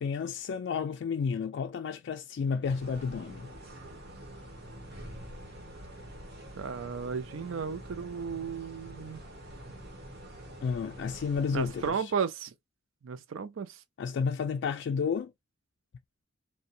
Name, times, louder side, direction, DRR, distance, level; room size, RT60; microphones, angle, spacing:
voice 1, 0.0-3.5 10.6-12.0 14.0-15.3, left 6 dB, 65° left, 0.3 m, -31 dB
sound 1, 2.6-11.9, right 1 dB, 55° right, 1.1 m, -46 dB
voice 2, 6.6-9.2 11.5-12.5 13.0-13.8, right 6 dB, 90° right, 0.4 m, -34 dB
2.7 x 2.2 x 2.4 m
head